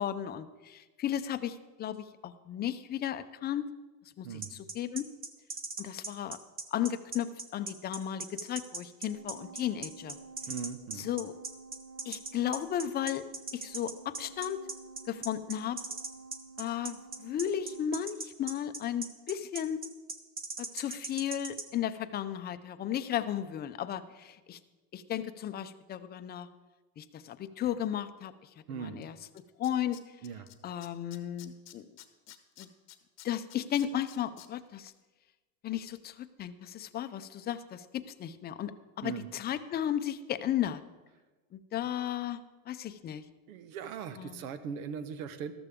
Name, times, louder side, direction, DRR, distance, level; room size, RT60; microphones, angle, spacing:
voice 1, 0.0-3.7 4.2-4.4 4.7-5.1 5.8-6.4 6.7-7.3 7.5-10.2 11.0-11.3 12.1-13.2 13.5-14.6 15.1-15.8 16.6-19.8 20.6-24.6 24.9-26.5 27.0-28.3 28.7-29.2 29.6-30.0 30.6-31.8 32.6-32.7 33.2-34.9 35.6-38.7 39.0-40.8 41.5-42.4 42.7-43.2 44.2-44.4, left 10 dB, 25° left, 11 dB, 0.5 m, -34 dB
sound 1, 4.4-21.7, right 3 dB, 20° right, 0.9 m, -39 dB
sound 2, 9.0-17.9, right 4 dB, 45° right, 1.0 m, -51 dB
voice 2, 10.5-11.1 28.7-29.0 30.2-30.5 39.0-39.3 43.5-45.5, right 7 dB, 90° right, 11 dB, 1.1 m, -39 dB
Tools, 29.0-29.1 29.4-30.5 30.8-34.5 34.9-35.0, left 14 dB, 40° left, 0.9 m, -51 dB
13.5 x 13.0 x 3.6 m, 1.2 s
supercardioid pair, 135°, 42 cm